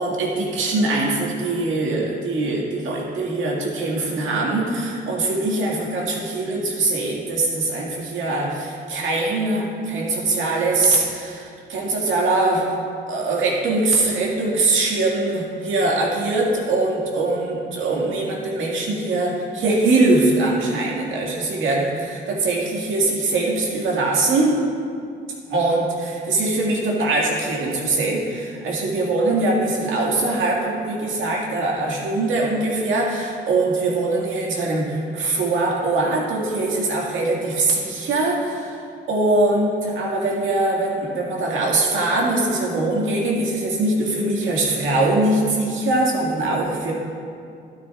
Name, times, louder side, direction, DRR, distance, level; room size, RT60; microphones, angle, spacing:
voice 1, 0.0-12.7 13.1-24.6 25.5-38.8 39.1-46.9, right 2 dB, 80° right, -3 dB, 2.0 m, -22 dB
12.5 x 9.4 x 2.4 m, 2.4 s
cardioid pair, 90°, 20 cm